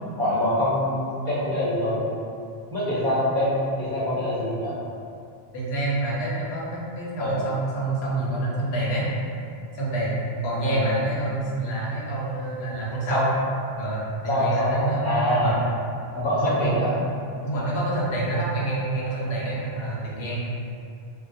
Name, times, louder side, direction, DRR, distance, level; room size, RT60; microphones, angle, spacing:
voice 1, 0.2-2.2 2.7-4.7 7.2-7.4 10.6-10.9 13.1-13.3 14.3-15.6 16.1-16.9, left 1 dB, 30° right, -13 dB, 0.5 m, -24 dB
voice 2, 5.5-9.1 9.7-13.3 13.8-15.6 16.4-17.1 17.4-20.4, right 2 dB, 85° left, -5 dB, 0.9 m, -27 dB
2.3 x 2.1 x 2.6 m, 2.5 s
omnidirectional pair, 1.1 m